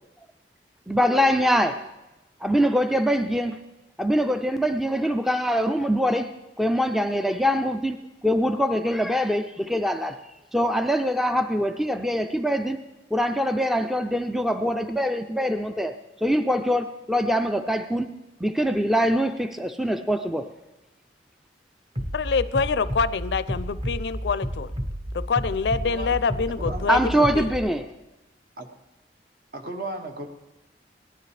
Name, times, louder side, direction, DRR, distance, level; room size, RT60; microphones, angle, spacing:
voice 1, 0.9-1.9 2.4-3.6 4.0-6.3 6.6-10.2 10.5-12.8 13.1-18.1 18.4-20.5 26.9-27.8, equal, ahead, 8 dB, 0.3 m, -23 dB
Bass drum, 21.9-27.6, equal, 30° right, 0.9 m, -31 dB
voice 2, 22.1-24.7 25.1-27.5, left 5 dB, 70° left, 16 dB, 0.4 m, -26 dB
voice 3, 26.6-26.9 28.6-28.7 29.5-30.3, right 2 dB, 55° right, 5 dB, 1.2 m, -35 dB
18.0 x 11.5 x 3.3 m, 1.0 s
head